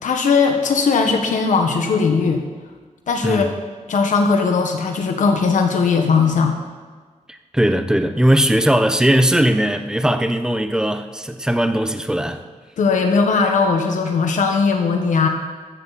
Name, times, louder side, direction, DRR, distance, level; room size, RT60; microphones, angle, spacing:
voice 1, 0.0-2.4 3.1-3.5 3.9-6.5 12.8-15.3, left 5 dB, 70° left, 4 dB, 1.4 m, -18 dB
voice 2, 7.3-12.4, right 1 dB, 5° right, 8 dB, 0.8 m, -19 dB
14.0 x 14.0 x 4.2 m, 1.4 s
wide cardioid pair, 145°, 13 cm